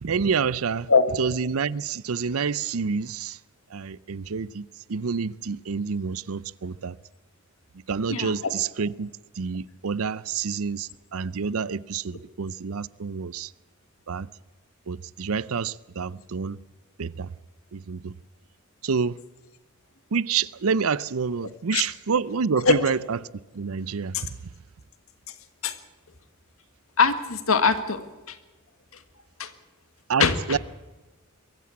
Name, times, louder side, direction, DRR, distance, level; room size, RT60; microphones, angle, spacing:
voice 1, 0.0-0.9 1.2-3.4 3.7-7.0 7.9-9.1 9.4-13.5 14.1-14.3 14.9-16.6 17.0-17.3 17.7-18.1 18.8-19.2 20.1-23.2 23.5-24.3 30.1-30.6, right 5 dB, 80° right, 0.6 m, -28 dB
voice 2, 27.0-28.0 29.4-29.5 30.2-30.6, left 5 dB, 75° left, 1.7 m, -21 dB
23.0 x 14.5 x 8.4 m
head